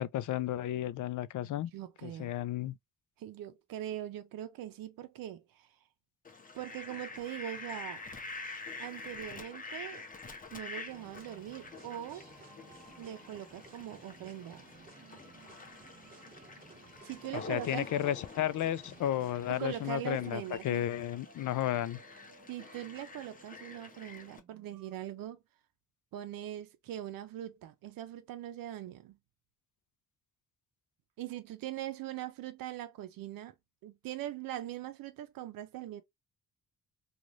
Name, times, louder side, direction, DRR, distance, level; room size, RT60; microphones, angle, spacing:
voice 1, 0.0-1.7 2.0-2.8 17.3-22.0, left 12 dB, 60° left, 0.4 m, -33 dB
voice 2, 1.7-2.3 3.2-5.7 6.5-8.0 8.8-10.0 10.5-12.3 13.0-14.6 17.0-17.9 19.5-20.9 22.5-25.4 26.1-29.2 31.2-33.5 33.8-36.0, right 12 dB, 85° right, 0.6 m, -41 dB
Fowl, 6.2-24.4, left 3 dB, 25° left, 0.8 m, -48 dB
sound 1, 10.9-20.6, right 3 dB, 25° right, 1.3 m, -57 dB
sound 2, 12.2-24.9, right 4 dB, 55° right, 1.2 m, -62 dB
3.1 x 2.5 x 2.4 m
cardioid pair, 85°, 34 cm